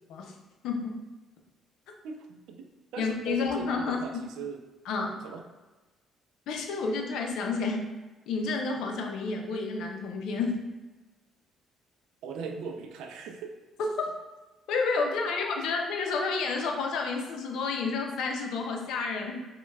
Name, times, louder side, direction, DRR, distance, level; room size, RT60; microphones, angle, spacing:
voice 1, 2.0-2.7 2.9-4.6 5.2-5.4 12.2-13.6 15.3-15.4, right 5 dB, 80° right, 4 dB, 0.4 m, -39 dB
voice 2, 3.0-4.2 4.8-5.2 6.5-7.8 8.3-10.6 13.8-14.1 14.7-19.5, left 4 dB, 80° left, 2 dB, 0.5 m, -30 dB
5.2 x 2.2 x 2.3 m, 1.2 s
cardioid pair, 95°, 0 cm